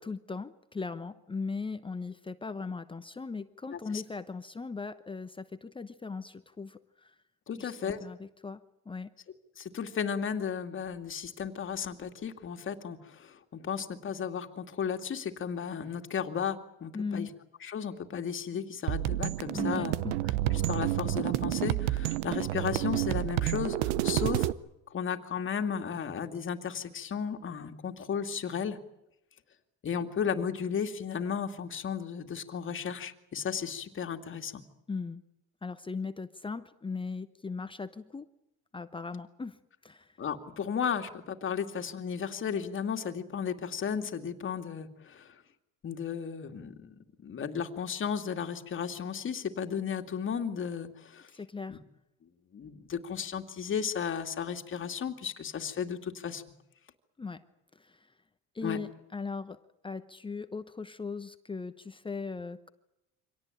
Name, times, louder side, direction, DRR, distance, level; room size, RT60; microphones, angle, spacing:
voice 1, 0.0-7.1 7.6-9.1 16.9-17.3 19.5-20.2 34.9-35.2 35.6-38.3 38.7-40.2 51.3-51.8 57.2-57.4 57.7-58.1 58.5-62.7, left 4 dB, 15° left, 10 dB, 0.9 m, -39 dB
voice 2, 7.5-8.0 9.6-17.3 17.6-20.0 20.5-24.5 24.9-28.8 29.8-34.6 40.2-45.4 45.8-51.3 51.7-51.8 52.5-56.4 58.6-58.8, left 7 dB, 35° left, 6 dB, 2.4 m, -34 dB
sound 1, 18.9-24.5, right 16 dB, 85° right, 0.9 m, -29 dB
25.0 x 18.0 x 9.0 m, 0.88 s
cardioid pair, 115°, 34 cm